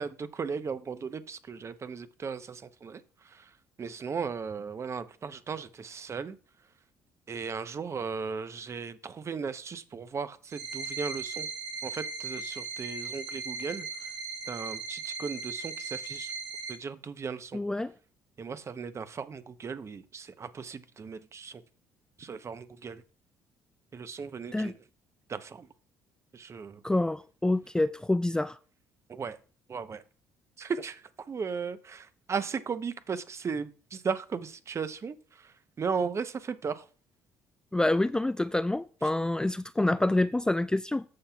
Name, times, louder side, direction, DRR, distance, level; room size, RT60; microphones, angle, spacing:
voice 1, 0.0-3.0 3.3-3.4 3.8-6.4 7.3-11.5 11.8-13.9 14.5-16.3 16.7-17.6 18.4-21.6 22.2-23.0 23.9-24.7 25.3-25.7 26.3-26.8 29.1-29.4 29.7-30.0 30.6-35.2 35.4-35.5 35.8-36.8, right 5 dB, 40° right, 0.8 m, -36 dB
sound 1, 10.5-16.7, right 4 dB, 70° right, 2.0 m, -38 dB
voice 2, 17.5-17.9 24.5-24.7 26.8-28.6 37.7-41.0, left 2 dB, 10° left, 0.3 m, -27 dB
14.5 x 5.6 x 2.3 m
hypercardioid pair, 60°, 7 cm